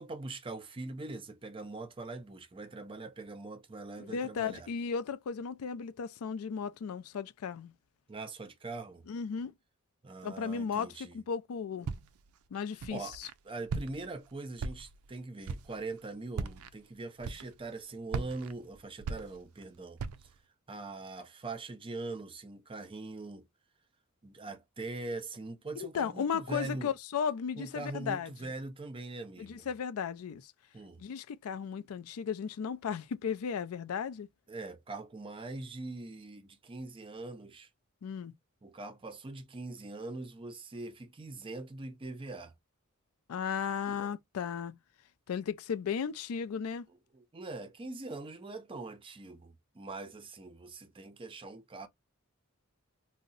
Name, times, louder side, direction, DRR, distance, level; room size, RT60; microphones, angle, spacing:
voice 1, 0.0-4.7 8.1-9.0 10.0-11.2 12.9-13.2 13.4-20.3 20.7-23.5 24.2-26.9 27.6-29.7 30.7-31.0 34.5-37.7 38.6-42.5 43.8-44.1 47.1-51.9, right 3 dB, 25° right, 0.4 m, -42 dB
voice 2, 4.0-7.7 9.1-9.5 10.2-11.9 12.5-13.3 25.8-28.5 29.4-30.5 31.0-34.3 38.0-38.3 43.3-44.8 45.3-46.9, left 6 dB, 85° left, 0.4 m, -35 dB
Walk footsteps, 11.8-12.3 12.8-13.3 13.7-14.2 14.6-15.1 15.4-15.8 16.3-16.7 17.2-17.7 18.1-19.6 20.0-20.4, right 4 dB, 90° right, 0.4 m, -38 dB
2.7 x 2.1 x 3.8 m
head